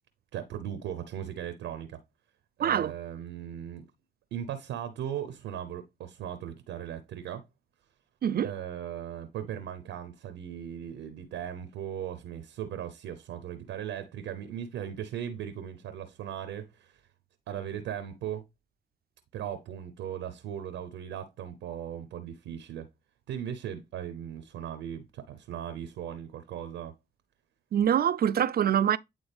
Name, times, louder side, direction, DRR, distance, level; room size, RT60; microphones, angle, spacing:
voice 1, 0.3-2.0 2.6-3.9 4.3-7.5 8.4-17.0 17.5-18.4 19.3-22.9 23.3-26.9, right 10 dB, 90° right, 0.7 m, -38 dB
voice 2, 2.6-2.9 8.2-8.5 27.7-29.0, right 9 dB, 55° right, 0.5 m, -24 dB
9.1 x 3.7 x 3.4 m
supercardioid pair, 45°, 19 cm